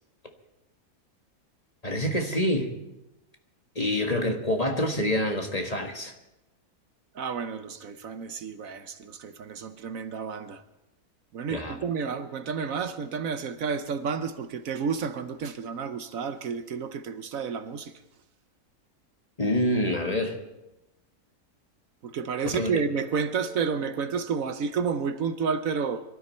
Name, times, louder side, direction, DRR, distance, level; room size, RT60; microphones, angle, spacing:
voice 1, 1.8-2.7 3.7-6.1 11.5-11.7 19.4-20.4 22.6-22.8, left 1 dB, 25° left, 1.5 m, -26 dB
voice 2, 7.1-10.6 11.3-17.9 22.0-26.0, right 6 dB, 65° right, 1.2 m, -31 dB
23.5 x 13.0 x 4.4 m
omnidirectional pair, 1.6 m